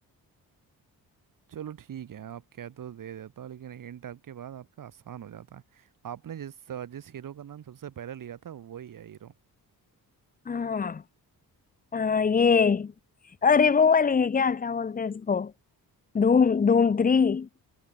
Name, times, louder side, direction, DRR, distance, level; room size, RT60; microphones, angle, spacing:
voice 1, 1.5-9.3, right 9 dB, 60° right, 2.4 m, -41 dB
voice 2, 10.5-11.0 11.9-12.9 13.4-15.5 16.1-17.5, left 5 dB, 25° left, 0.7 m, -22 dB
wide cardioid pair, 145°, 37 cm